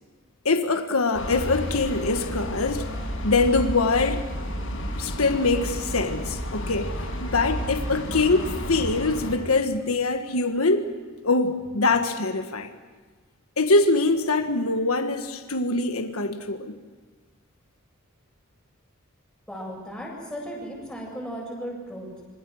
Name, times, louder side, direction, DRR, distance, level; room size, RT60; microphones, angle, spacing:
voice 1, 0.4-2.9 3.2-4.2 5.0-6.9 7.2-10.9 11.2-12.7 13.6-16.7, left 3 dB, 85° left, 1.6 m, -23 dB
sound 1, 1.1-9.3, equal, 65° left, 6.6 m, -31 dB
voice 2, 19.5-22.2, equal, 5° left, 8.0 m, -36 dB
26.5 x 26.0 x 6.5 m
head